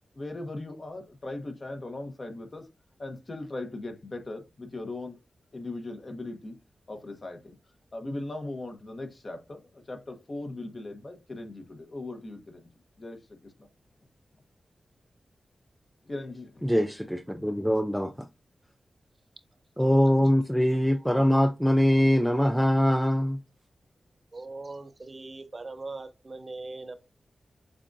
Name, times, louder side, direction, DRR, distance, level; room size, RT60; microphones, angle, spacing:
voice 1, 0.1-2.7 3.0-5.2 5.5-6.5 6.9-7.6 7.9-12.7 13.0-13.7 16.0-16.7, left 2 dB, 40° left, 1.1 m, -39 dB
voice 2, 16.6-18.3 19.8-23.4, equal, ahead, 0.4 m, -23 dB
voice 3, 24.3-26.9, right 3 dB, 40° right, 0.6 m, -40 dB
7.3 x 2.5 x 2.6 m
cardioid pair, 70°, 0 cm